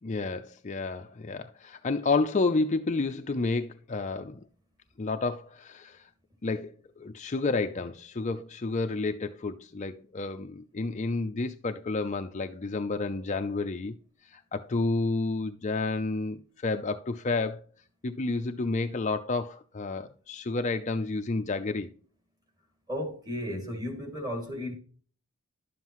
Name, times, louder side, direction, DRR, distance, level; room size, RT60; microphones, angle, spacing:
voice 1, 0.0-4.4 5.0-6.1 6.4-13.9 14.2-17.6 18.0-21.9, left 3 dB, 30° left, 0.5 m, -30 dB
voice 2, 22.9-24.7, left 1 dB, 20° right, 2.5 m, -34 dB
11.5 x 7.4 x 3.0 m
head